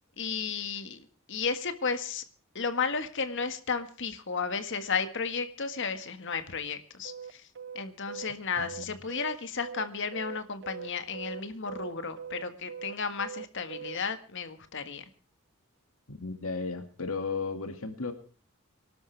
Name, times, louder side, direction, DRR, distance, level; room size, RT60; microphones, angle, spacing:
voice 1, 0.2-2.2 2.6-7.4 7.8-15.0, left 5 dB, 60° left, 9 dB, 1.7 m, -33 dB
sound 1, 7.0-14.0, right 7 dB, 55° right, 0.7 m, -41 dB
voice 2, 8.6-8.9 16.1-18.1, left 4 dB, 85° left, 6 dB, 2.2 m, -35 dB
25.0 x 12.5 x 3.4 m, 0.39 s
head